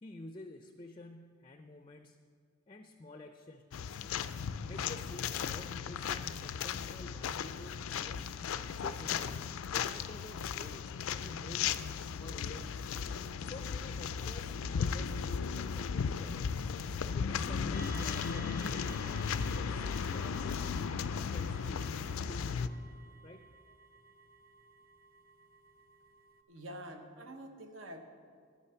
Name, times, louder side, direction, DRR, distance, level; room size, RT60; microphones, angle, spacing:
voice 1, 0.0-2.2 2.7-3.9 4.6-8.3 8.7-9.4 9.7-10.9 11.2-11.7 12.2-12.7 13.4-16.5 17.1-22.8 23.2-23.5, left 2 dB, 25° left, 6 dB, 0.4 m, -50 dB
sound 1, 3.7-22.7, left 6 dB, 85° left, 0.4 m, -36 dB
sound 2, 17.7-26.4, right 3 dB, 45° right, 0.6 m, -54 dB
voice 2, 26.5-28.0, right 1 dB, 70° right, 5 dB, 1.0 m, -46 dB
9.9 x 9.1 x 5.7 m, 2.1 s
head